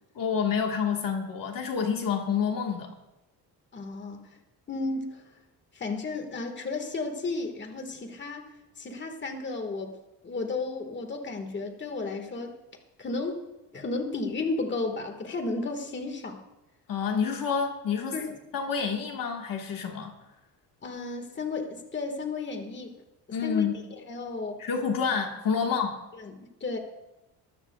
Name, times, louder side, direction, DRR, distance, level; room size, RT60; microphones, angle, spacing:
voice 1, 0.1-2.9 16.9-18.2 18.5-20.1 23.3-23.8 24.6-26.0, left 6 dB, 50° left, 2 dB, 1.6 m, -28 dB
voice 2, 3.7-4.4 4.7-5.2 5.7-9.9 10.2-12.5 13.0-13.5 13.7-16.4 18.1-18.3 20.8-22.9 23.4-24.6 25.6-25.8 26.1-26.8, left 3 dB, 25° left, 5 dB, 1.7 m, -33 dB
21.0 x 13.5 x 2.4 m, 0.99 s
cardioid pair, 130°, 42 cm